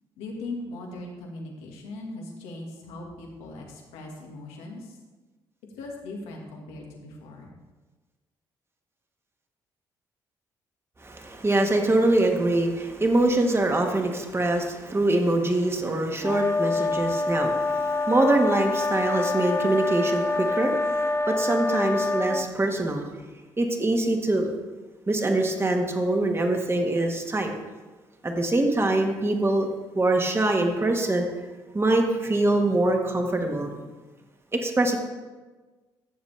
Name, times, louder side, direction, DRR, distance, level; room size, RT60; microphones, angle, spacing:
voice 1, 0.2-5.0 5.7-7.5, left 2 dB, 85° left, 0 dB, 1.8 m, -39 dB
voice 2, 11.0-23.0 23.6-24.5 25.1-27.5 28.2-29.7 29.9-31.3 31.7-33.7 34.5-35.0, right 2 dB, 25° right, 3 dB, 1.6 m, -24 dB
sound 1, 16.2-22.5, left 3 dB, 25° left, 0.9 m, -26 dB
14.0 x 7.1 x 3.4 m, 1.3 s
supercardioid pair, 60°, 10 cm